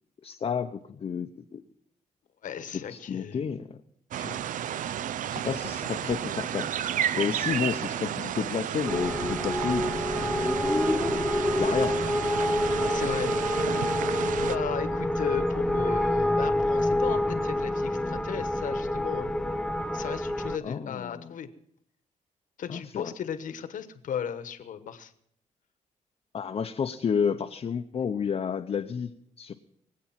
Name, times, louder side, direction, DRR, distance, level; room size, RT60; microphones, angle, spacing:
voice 1, 0.2-1.6 2.9-3.8 4.2-4.4 5.2-6.7 7.1-10.4 11.6-12.1 12.6-12.8 20.6-21.4 22.7-23.1 26.3-29.5, left 7 dB, 45° left, 4 dB, 0.7 m, -31 dB
voice 2, 2.4-3.4 11.5-11.9 12.9-13.3 14.4-19.3 19.9-21.5 22.6-25.1, left 8 dB, 70° left, 11 dB, 1.2 m, -36 dB
sound 1, 4.1-14.6, right 10 dB, 70° right, 0.5 m, -32 dB
sound 2, 8.9-20.6, left 1 dB, 5° left, 0.5 m, -27 dB
23.5 x 8.5 x 5.8 m, 0.69 s
cardioid pair, 115°, 14 cm